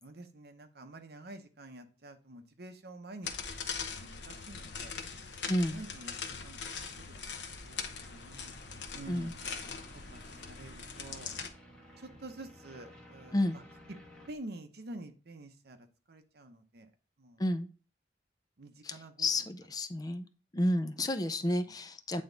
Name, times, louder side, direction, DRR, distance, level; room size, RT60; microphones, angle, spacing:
voice 1, 0.0-3.3 3.8-4.9 5.7-6.1 6.4-7.1 7.6-7.8 8.1-8.5 8.9-9.3 9.9-10.2 10.5-11.3 12.0-13.6 14.3-16.9 17.2-17.4 18.6-19.3 21.1-21.3, right 2 dB, 60° right, 7 dB, 0.8 m, -48 dB
sound 1, 3.2-11.5, left 5 dB, 85° left, 0.9 m, -41 dB
voice 2, 5.5-5.8 9.1-9.3 13.3-13.6 17.4-17.7 18.8-20.3 20.5-22.2, left 1 dB, 20° left, 9 dB, 0.4 m, -31 dB
sound 2, 7.7-14.3, equal, 5° left, 1.6 m, -56 dB
8.6 x 3.5 x 3.9 m, 0.37 s
head